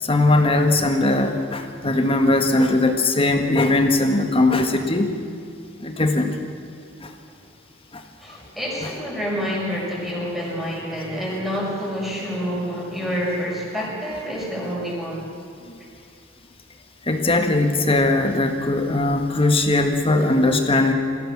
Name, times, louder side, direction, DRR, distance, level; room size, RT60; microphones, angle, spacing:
voice 1, 0.0-5.1 5.8-6.3 7.0-7.1 7.9-8.0 17.1-20.9, left 2 dB, 30° left, 5 dB, 1.6 m, -19 dB
voice 2, 8.2-15.3, equal, ahead, -4 dB, 6.3 m, -28 dB
22.0 x 16.0 x 7.5 m, 2.5 s
head